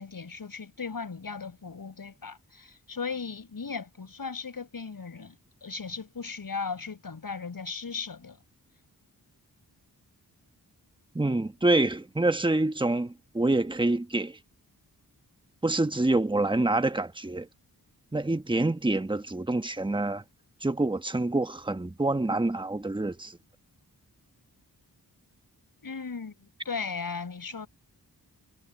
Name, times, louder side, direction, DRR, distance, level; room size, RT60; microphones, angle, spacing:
voice 1, 0.0-5.4 5.6-8.4 25.8-27.7, left 5 dB, 60° left, 7.2 m, -37 dB
voice 2, 11.1-14.4 15.6-17.5 18.1-20.2 20.6-23.4, right 2 dB, 10° right, 1.3 m, -26 dB
wide cardioid pair, 85°, 38 cm